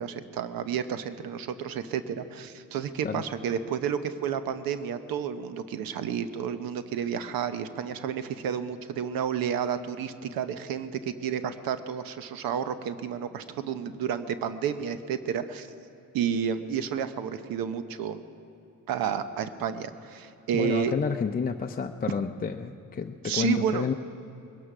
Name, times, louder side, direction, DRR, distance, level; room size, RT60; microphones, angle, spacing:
voice 1, 0.0-15.7 16.1-18.2 18.9-20.9 23.2-23.8, right 8 dB, 85° right, 11 dB, 0.9 m, -31 dB
voice 2, 20.5-23.9, left 5 dB, 25° left, 4 dB, 0.6 m, -30 dB
21.5 x 11.0 x 6.0 m, 3.0 s
cardioid pair, 85°, 34 cm